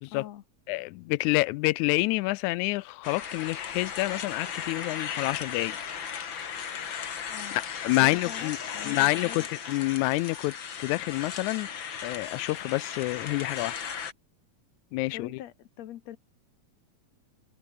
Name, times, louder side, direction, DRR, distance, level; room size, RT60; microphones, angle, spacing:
voice 1, 0.1-0.4 7.3-7.6 8.0-9.5 15.1-16.2, left 12 dB, 70° left, 2.2 m, -43 dB
voice 2, 0.7-5.8 7.8-8.6 8.9-13.8 14.9-15.4, left 21 dB, 85° left, 2.0 m, -28 dB
sound 1, 3.0-14.1, left 7 dB, 45° left, 2.3 m, -36 dB
omnidirectional pair, 3.3 m